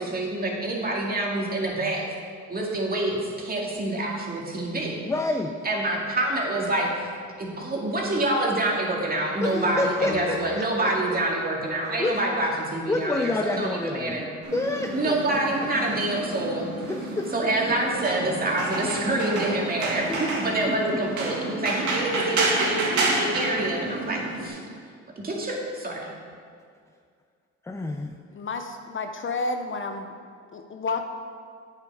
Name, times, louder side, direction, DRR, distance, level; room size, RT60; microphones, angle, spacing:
voice 1, 0.0-2.0 2.5-5.0 5.6-7.1 7.4-14.3 14.9-16.7 17.3-24.6 25.2-26.1, right 2 dB, 30° right, -2 dB, 2.1 m, -27 dB
voice 2, 5.0-5.6 7.6-7.7 9.4-10.7 12.0-12.2 12.9-15.7 16.9-17.5 19.4-19.5 20.1-21.0 27.6-28.2, left 2 dB, 10° left, 4 dB, 0.5 m, -29 dB
Piano, 10.0-16.5, left 1 dB, 70° left, 2.2 m, -42 dB
sound 1, 14.4-24.5, right 2 dB, 75° right, 1.9 m, -30 dB
voice 3, 28.3-30.1 30.5-31.0, left 3 dB, 40° left, 6 dB, 0.7 m, -30 dB
8.7 x 7.4 x 4.8 m, 2.2 s
cardioid pair, 90°, 30 cm